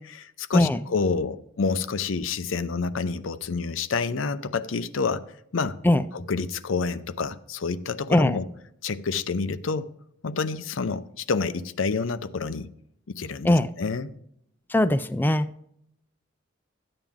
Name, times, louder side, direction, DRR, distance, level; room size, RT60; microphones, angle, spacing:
voice 1, 0.0-5.2 5.5-5.8 6.1-8.4 8.8-9.9 10.2-12.7 13.1-14.1, left 4 dB, 90° left, 0.6 m, -28 dB
voice 2, 14.7-15.5, left 1 dB, 10° left, 0.3 m, -20 dB
13.0 x 8.8 x 3.6 m
head